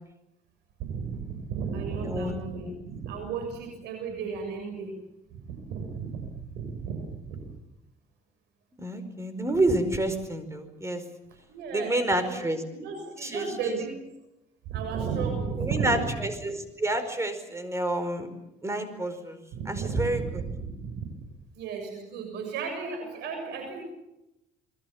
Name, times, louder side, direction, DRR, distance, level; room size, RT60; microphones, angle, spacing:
voice 1, 0.8-5.0 5.3-7.4 11.5-14.0 14.7-16.3 19.5-21.1 21.5-23.8, right 5 dB, 80° right, 4 dB, 6.9 m, -34 dB
voice 2, 2.1-2.7 8.8-11.0 11.7-12.6 13.2-13.8 15.6-18.3 18.6-19.4 19.7-20.2, right 1 dB, 15° right, 10 dB, 4.9 m, -29 dB
29.0 x 21.5 x 7.3 m, 0.91 s
cardioid pair, 110°, 17 cm